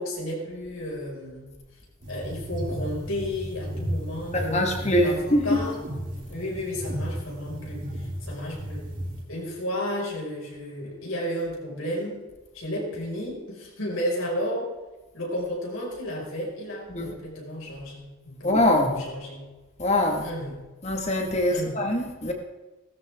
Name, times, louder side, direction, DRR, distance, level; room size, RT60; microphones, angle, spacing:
voice 1, 0.0-1.5 2.1-4.7 5.0-5.8 6.3-8.9 9.3-12.2 12.5-14.7 15.1-19.4 20.2-20.6 21.5-21.8, equal, 75° left, -3 dB, 5.7 m, -33 dB
sound 1, 2.0-9.2, equal, 40° right, 3.3 m, -34 dB
voice 2, 4.3-5.6 16.9-17.1 18.4-19.0 19.8-20.2 20.8-22.3, left 1 dB, 30° left, 3 dB, 1.8 m, -23 dB
18.0 x 13.5 x 3.7 m, 1.2 s
head